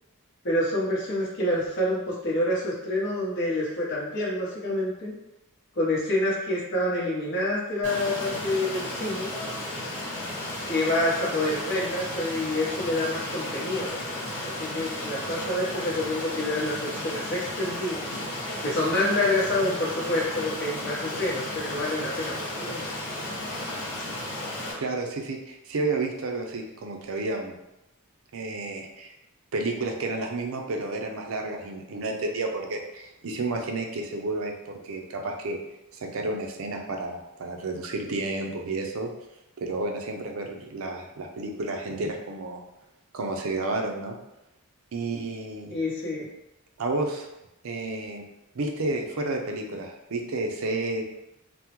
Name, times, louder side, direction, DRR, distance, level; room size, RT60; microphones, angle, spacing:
voice 1, 0.4-5.1 5.8-9.3 10.7-18.1 18.6-22.8 45.7-46.3, left 1 dB, 55° left, -4 dB, 0.8 m, -27 dB
Stream, 7.8-24.7, left 1 dB, 80° left, 1.2 m, -34 dB
voice 2, 24.8-27.6 28.3-29.1 29.5-35.6 35.9-39.1 39.6-42.6 43.1-44.2 44.9-45.8 46.8-47.3 47.6-48.2 48.5-51.0, right 2 dB, 65° right, 2 dB, 0.5 m, -31 dB
3.5 x 2.0 x 2.9 m, 0.90 s
head